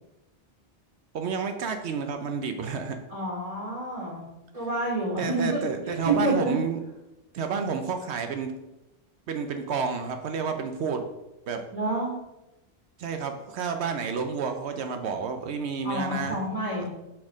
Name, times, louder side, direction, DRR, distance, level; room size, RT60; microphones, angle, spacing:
voice 1, 1.1-3.0 5.2-6.8 7.3-8.5 9.3-11.0 11.5-11.6 13.0-16.4 16.8-16.9, right 5 dB, 75° right, 6 dB, 0.9 m, -30 dB
voice 2, 3.1-4.3 4.5-6.5 11.7-12.1 15.8-16.9, right 1 dB, 35° right, -7 dB, 2.6 m, -28 dB
6.0 x 4.5 x 4.9 m, 0.95 s
omnidirectional pair, 1.1 m